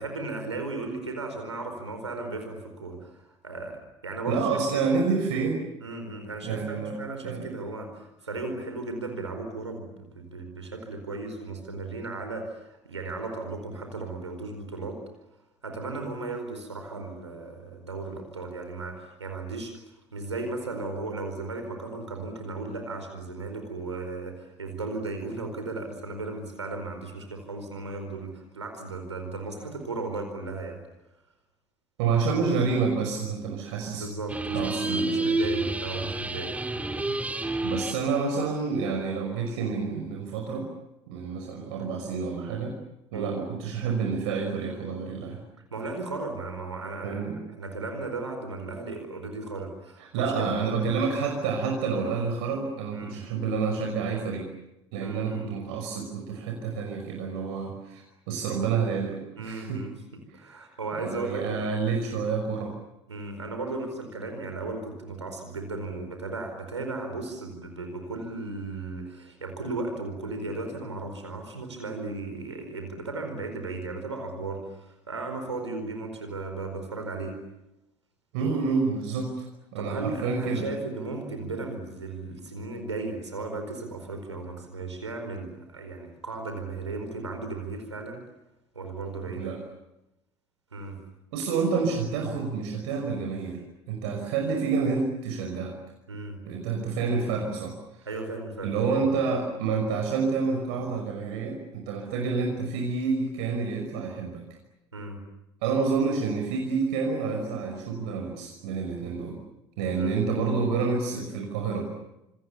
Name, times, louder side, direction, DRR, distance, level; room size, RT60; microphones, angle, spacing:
voice 1, 0.0-4.6 4.9-5.0 5.8-15.0 15.6-30.8 33.9-36.6 43.1-43.4 45.6-47.2 47.6-50.5 52.9-53.2 55.0-55.6 59.4-60.0 60.3-61.7 63.1-77.4 79.7-88.2 88.7-89.5 90.7-91.0 96.1-96.4 98.0-99.0 104.9-105.2 109.9-110.2, right 3 dB, 80° right, 5 dB, 4.7 m, -36 dB
voice 2, 4.3-5.6 6.4-7.0 7.2-7.5 32.0-34.0 34.5-35.3 37.6-40.7 41.1-42.7 43.1-45.4 47.0-47.4 50.0-54.5 54.9-59.8 61.0-62.7 78.3-79.5 79.7-80.7 89.3-89.6 91.3-93.6 93.9-95.8 96.5-98.1 98.6-104.4 105.6-109.4 109.8-111.9, right 5 dB, 60° right, 2 dB, 5.7 m, -28 dB
sound 1, 34.3-38.1, right 2 dB, 10° right, 3.1 m, -29 dB
29.5 x 27.5 x 7.0 m, 0.90 s
figure-of-eight pair, 60°, 15 cm